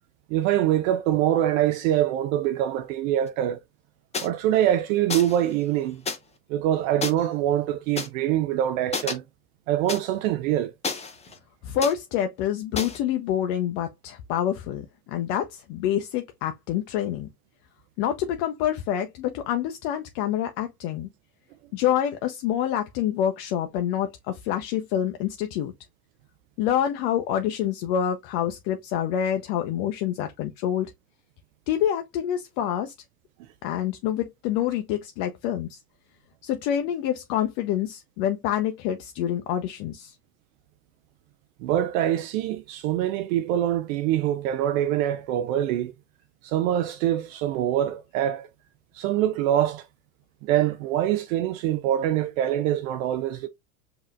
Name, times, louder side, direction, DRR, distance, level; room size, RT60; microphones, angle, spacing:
voice 1, 0.3-3.6 4.2-6.0 6.5-9.2 9.7-10.7 41.6-45.9 46.4-48.5 48.9-49.9 50.4-53.5, right 12 dB, 55° right, 0.5 m, -24 dB
sound 1, 4.1-4.3 5.1-5.4 6.1-6.2 7.0-7.1 8.0-8.1 8.9-9.1 9.9-10.0 10.8-11.4 11.8-11.9 12.8-13.0, left 4 dB, 15° left, 0.7 m, -30 dB
voice 2, 11.6-17.3 18.0-21.1 21.7-25.7 26.6-30.9 31.7-32.9 33.6-35.8 36.4-40.1, left 10 dB, 50° left, 0.6 m, -27 dB
5.4 x 2.9 x 2.3 m
hypercardioid pair, 90°, 49 cm